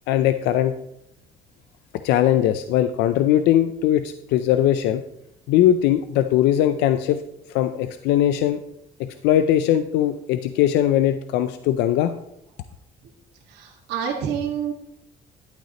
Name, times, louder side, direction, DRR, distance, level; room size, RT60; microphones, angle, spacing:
voice 1, 0.1-0.7 2.0-5.0 5.5-7.2 7.5-8.6 9.0-12.1, left 11 dB, 90° left, 10 dB, 0.5 m, -20 dB
voice 2, 13.5-14.7, right 8 dB, 85° right, -3 dB, 1.7 m, -28 dB
11.5 x 8.9 x 2.9 m, 0.78 s
cardioid pair, 110°, 17 cm